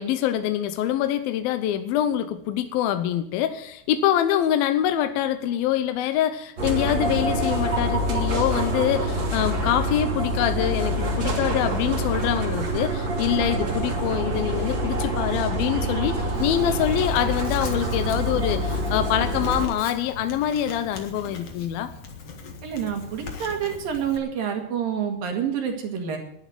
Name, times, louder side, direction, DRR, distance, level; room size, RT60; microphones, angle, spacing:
voice 1, 0.0-21.9, left 11 dB, 75° left, 10 dB, 2.4 m, -25 dB
sound 1, 6.6-19.7, right 1 dB, 30° right, 2.7 m, -26 dB
Writing, 16.3-24.2, left 4 dB, 50° left, 2.2 m, -41 dB
voice 2, 22.6-26.2, right 8 dB, 60° right, 3 dB, 3.7 m, -28 dB
11.5 x 11.0 x 9.3 m, 0.72 s
omnidirectional pair, 4.9 m